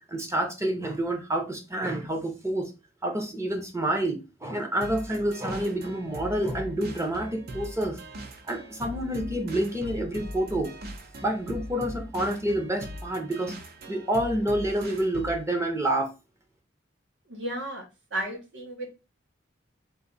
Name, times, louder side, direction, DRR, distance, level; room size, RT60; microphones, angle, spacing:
voice 1, 0.1-2.7 3.0-8.0 8.5-10.7 11.2-13.5 13.9-16.1, right 1 dB, 15° right, 3 dB, 0.7 m, -28 dB
sound 1, 4.8-15.5, equal, 55° right, 0.7 m, -40 dB
voice 2, 17.3-17.8 18.1-18.9, right 1 dB, 75° right, 1 dB, 1.5 m, -33 dB
3.9 x 2.6 x 3.9 m, 0.28 s
head